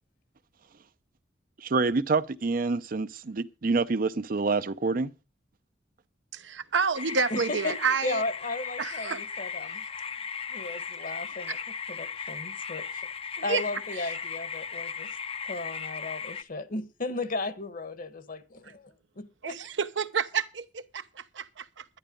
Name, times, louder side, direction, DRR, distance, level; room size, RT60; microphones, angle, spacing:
voice 1, 1.6-5.1, right 3 dB, 50° right, 0.5 m, -27 dB
voice 2, 6.3-8.2 8.8-9.2 11.5-11.6 13.4-13.6 14.0-14.2 19.4-21.9, right 5 dB, 85° right, 0.8 m, -29 dB
sound 1, 6.9-16.4, left 6 dB, 30° left, 0.6 m, -37 dB
voice 3, 7.3-9.8 10.5-11.6 11.9-13.1 13.4-15.1 15.4-19.6, left 2 dB, 50° left, 1.2 m, -35 dB
11.5 x 11.5 x 5.1 m
head